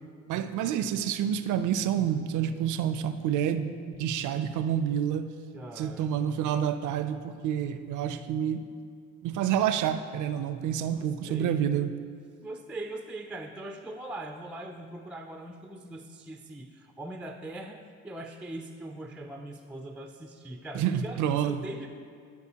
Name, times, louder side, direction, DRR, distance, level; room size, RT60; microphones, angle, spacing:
voice 1, 0.3-5.3 5.8-8.6 9.2-11.9 20.7-21.6, right 9 dB, 80° right, 11 dB, 0.5 m, -28 dB
voice 2, 5.5-6.1 10.7-11.7 12.4-21.9, right 1 dB, 5° right, 5 dB, 0.3 m, -41 dB
12.0 x 4.8 x 2.8 m, 2.2 s
cardioid pair, 90°, 30 cm